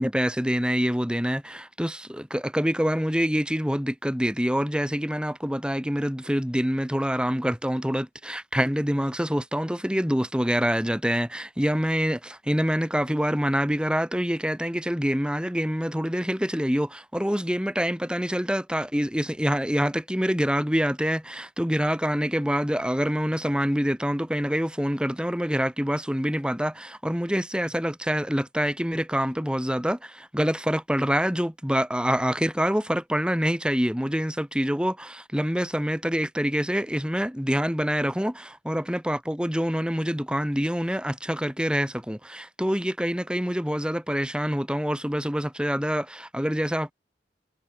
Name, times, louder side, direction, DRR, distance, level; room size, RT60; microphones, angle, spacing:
voice 1, 0.0-46.9, equal, 5° right, 4.8 m, -26 dB
head